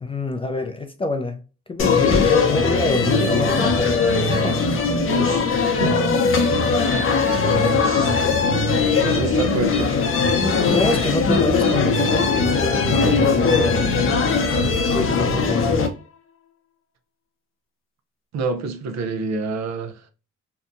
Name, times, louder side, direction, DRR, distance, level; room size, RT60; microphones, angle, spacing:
voice 1, 0.0-1.4 1.7-4.7 10.6-14.0 14.6-15.8, left 2 dB, 20° left, 0.3 m, -26 dB
sound 1, 1.8-15.9, left 4 dB, 45° left, 0.7 m, -19 dB
voice 2, 5.1-5.5 5.8-6.1 7.8-8.2 9.0-10.0 18.3-20.1, right 4 dB, 60° right, 0.6 m, -27 dB
2.8 x 2.1 x 2.4 m
cardioid pair, 90°, 30 cm